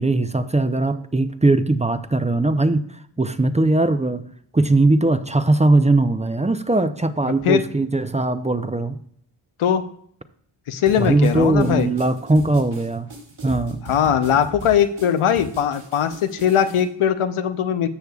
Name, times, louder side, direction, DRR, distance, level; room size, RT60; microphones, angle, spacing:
voice 1, 0.0-2.8 3.2-4.2 4.5-9.0 11.0-13.1 13.4-13.8, right 2 dB, 15° right, 10 dB, 0.6 m, -19 dB
voice 2, 10.7-11.9 13.9-17.9, left 9 dB, 90° left, 9 dB, 0.8 m, -20 dB
sound 1, 10.9-16.8, right 1 dB, 65° right, 3.5 m, -38 dB
12.5 x 6.7 x 2.3 m, 0.64 s
cardioid pair, 55°, 49 cm